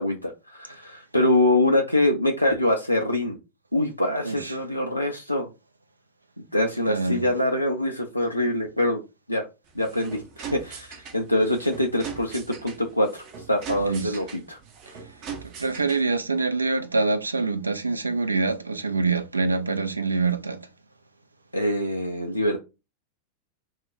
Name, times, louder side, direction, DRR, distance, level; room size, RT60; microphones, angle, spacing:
voice 1, 0.0-3.4 3.7-5.5 6.5-9.0 9.3-9.4 9.7-14.6 21.5-22.6, left 1 dB, 90° left, 0.4 m, -24 dB
voice 2, 6.9-7.3 13.8-14.2 15.4-20.6, right 3 dB, 80° right, 0.3 m, -25 dB
sound 1, 9.6-16.2, right 6 dB, 40° right, 0.6 m, -40 dB
2.3 x 2.0 x 3.8 m
figure-of-eight pair, 90°, 0 cm